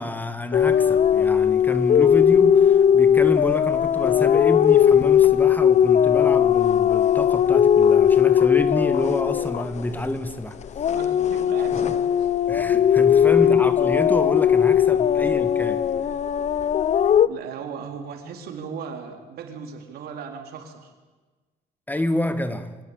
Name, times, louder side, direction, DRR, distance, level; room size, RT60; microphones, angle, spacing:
voice 1, 0.0-10.6 12.5-15.8 21.9-22.8, left 1 dB, 10° left, 1.4 m, -28 dB
sound 1, 0.5-10.3 10.7-17.3, left 9 dB, 45° left, 0.8 m, -18 dB
voice 2, 10.8-12.3 13.4-13.7 15.2-15.4 17.2-20.9, right 6 dB, 65° right, 4.0 m, -37 dB
24.5 x 17.0 x 9.2 m
cardioid pair, 110°, 17 cm